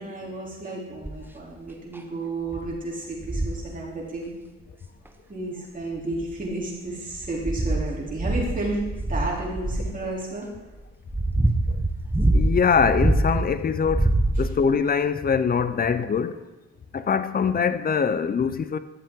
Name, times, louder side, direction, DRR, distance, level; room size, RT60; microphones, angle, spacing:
voice 1, 0.0-4.3 5.3-8.8 9.1-10.5, right 2 dB, 25° right, 3.2 m, -32 dB
sound 1, 1.0-1.3 1.9-2.0 2.5-2.7 3.2-3.7 5.1-5.2 5.9-6.6 7.1-10.0 10.7-13.5 13.8-14.8 15.6-15.7, right 2 dB, 5° right, 0.8 m, -24 dB
voice 2, 12.3-16.4 16.9-18.8, left 6 dB, 30° left, 0.5 m, -23 dB
11.5 x 7.3 x 3.7 m
cardioid pair, 90°, 30 cm